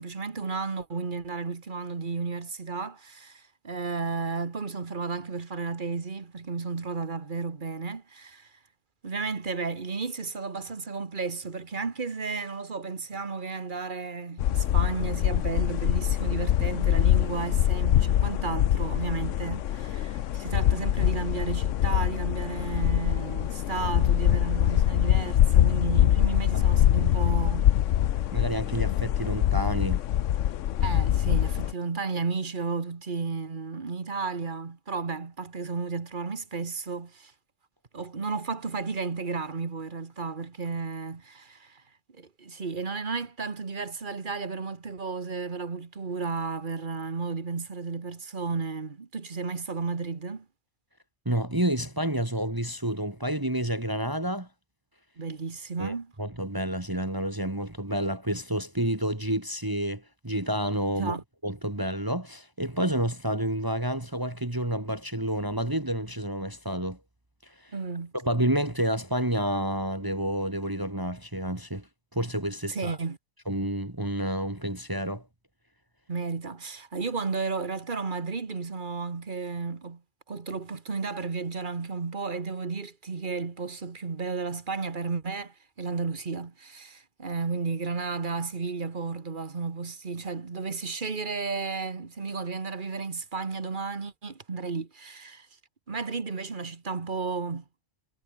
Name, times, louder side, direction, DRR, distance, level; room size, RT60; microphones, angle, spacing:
voice 1, 0.0-8.5 9.0-27.7 30.8-37.3 37.9-41.8 42.1-50.4 55.2-56.1 61.0-61.2 67.7-68.1 72.7-73.2 76.1-80.0 80.3-95.5 95.9-97.6, right 4 dB, 40° right, 1.6 m, -33 dB
sound 1, 14.4-31.7, left 11 dB, 75° left, 1.0 m, -24 dB
voice 2, 28.3-30.0 51.3-54.5 55.8-61.2 61.4-67.0 68.1-71.9 72.1-73.0 73.5-75.2, right 1 dB, 15° right, 2.0 m, -29 dB
omnidirectional pair, 1.3 m